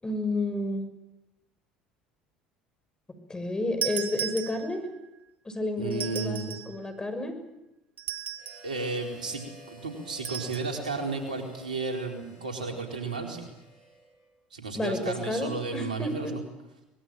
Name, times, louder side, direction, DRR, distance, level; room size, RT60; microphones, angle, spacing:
voice 1, 0.0-0.9 3.3-4.8 5.4-7.3 14.7-16.3, left 2 dB, 15° left, 7 dB, 6.4 m, -31 dB
sound 1, 3.8-5.0 5.9-6.8 8.0-8.7 10.2-10.7, right 9 dB, 40° right, 2.2 m, -35 dB
voice 2, 5.8-6.5 8.6-13.4 14.5-16.4, right 3 dB, 90° right, 3 dB, 4.2 m, -33 dB
Harmonica, 8.3-14.4, left 2 dB, 85° left, 7.8 m, -52 dB
23.5 x 21.0 x 9.2 m, 0.95 s
hypercardioid pair, 65°, 4 cm